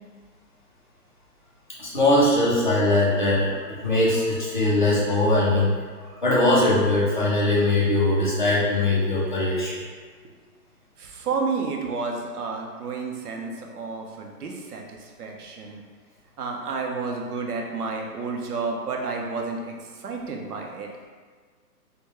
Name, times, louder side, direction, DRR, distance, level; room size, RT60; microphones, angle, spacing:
voice 1, 1.8-9.8, left 1 dB, 30° left, -7 dB, 0.4 m, -21 dB
voice 2, 11.0-15.8 16.4-21.1, right 4 dB, 65° right, 1 dB, 0.7 m, -31 dB
3.4 x 2.2 x 3.0 m, 1.5 s
hypercardioid pair, 155°, 49 cm